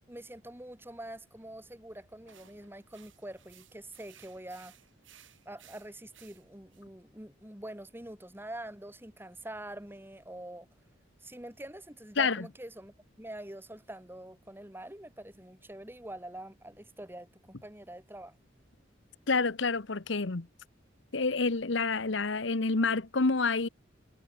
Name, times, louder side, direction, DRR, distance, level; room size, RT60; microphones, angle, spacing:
voice 1, 0.1-4.7 5.5-10.7 11.2-17.3 17.6-18.4, right 1 dB, 10° right, 2.2 m, -45 dB
sound 1, 2.3-6.8, right 10 dB, 75° right, 6.6 m, -59 dB
voice 2, 12.2-12.5 19.3-20.5 21.1-23.7, left 4 dB, 65° left, 1.1 m, -28 dB
head